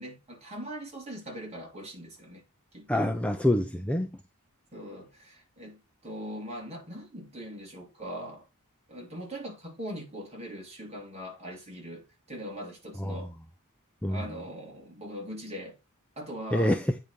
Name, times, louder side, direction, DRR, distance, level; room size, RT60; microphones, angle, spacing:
voice 1, 0.0-2.4 2.7-3.1 4.7-8.5 8.9-13.3 14.1-15.8 16.2-16.8, equal, 30° right, 3.2 m, -41 dB
voice 2, 2.9-4.2 13.0-13.2 14.0-14.2 16.5-17.0, left 1 dB, 5° left, 0.5 m, -26 dB
8.8 x 4.8 x 5.2 m
head